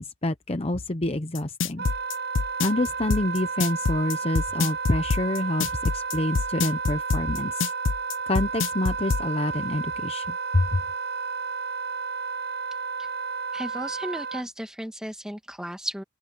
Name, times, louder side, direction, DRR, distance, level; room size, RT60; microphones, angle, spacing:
voice 1, 0.0-1.8 2.6-7.7 8.3-10.8, left 1 dB, 30° left, 0.8 m, -27 dB
sound 1, 1.3-9.2, left 4 dB, 70° left, 0.7 m, -25 dB
Wind instrument woodwind instrument, 1.8-14.5, right 5 dB, 55° right, 7.2 m, -32 dB
voice 2, 13.5-16.0, equal, 5° right, 2.3 m, -34 dB
open air
head